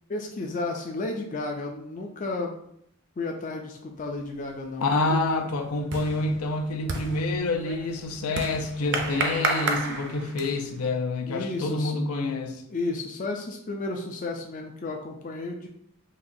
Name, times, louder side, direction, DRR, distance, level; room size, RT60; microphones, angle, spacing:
voice 1, 0.1-2.6 3.2-4.9 11.3-12.0 12.7-15.7, left 2 dB, 35° left, 2 dB, 0.3 m, -32 dB
sound 1, 4.3-4.7 5.0-10.8, right 3 dB, 50° right, 0.5 m, -32 dB
voice 2, 4.8-12.6, left 2 dB, 85° left, 4 dB, 0.5 m, -27 dB
4.1 x 3.0 x 2.6 m, 0.73 s
head